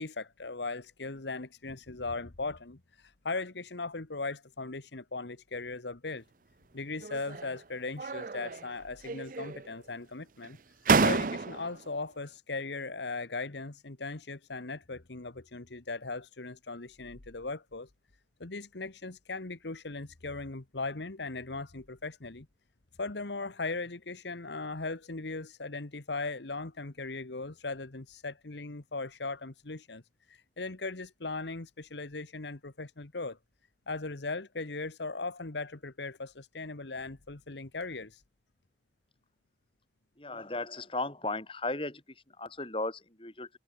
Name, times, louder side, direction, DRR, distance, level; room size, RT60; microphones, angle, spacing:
voice 1, 0.0-6.2 6.7-10.6 11.0-17.9 18.4-22.5 23.0-30.0 30.3-33.4 33.9-38.2, left 3 dB, 75° left, 1.4 m, -38 dB
sound 1, 7.0-7.6 8.0-8.7 9.0-9.8 10.4-10.5 10.8-11.8, right 4 dB, 50° right, 0.6 m, -29 dB
voice 2, 40.2-43.5, left 2 dB, 30° left, 4.6 m, -36 dB
head